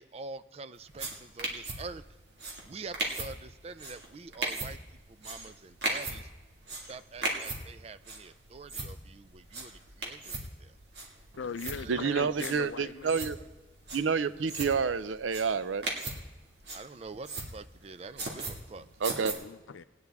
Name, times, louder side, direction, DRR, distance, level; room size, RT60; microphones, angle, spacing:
voice 1, 0.0-2.0 2.6-4.8 5.1-6.3 6.7-10.7 11.8-13.5 16.7-18.9, right 4 dB, 30° right, 13 dB, 0.4 m, -46 dB
sound 1, 0.8-19.3, right 2 dB, 60° right, 2.0 m, -39 dB
voice 2, 11.4-13.3 19.2-19.8, left 5 dB, 80° left, 14 dB, 0.5 m, -40 dB
voice 3, 11.9-13.4 13.9-15.9 19.0-19.3, right 5 dB, 85° right, 14 dB, 0.5 m, -29 dB
20.0 x 9.4 x 3.5 m, 1.1 s
head